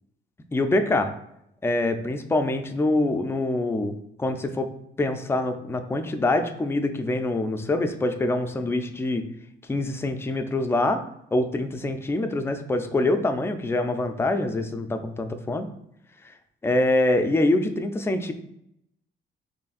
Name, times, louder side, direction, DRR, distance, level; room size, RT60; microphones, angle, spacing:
voice 1, 0.5-1.1 1.6-3.9 4.2-4.7 5.0-9.2 9.7-11.0 11.3-15.7 16.6-18.3, left 2 dB, 10° left, 6 dB, 0.3 m, -25 dB
4.0 x 3.1 x 2.4 m, 0.77 s
cardioid pair, 90°, 20 cm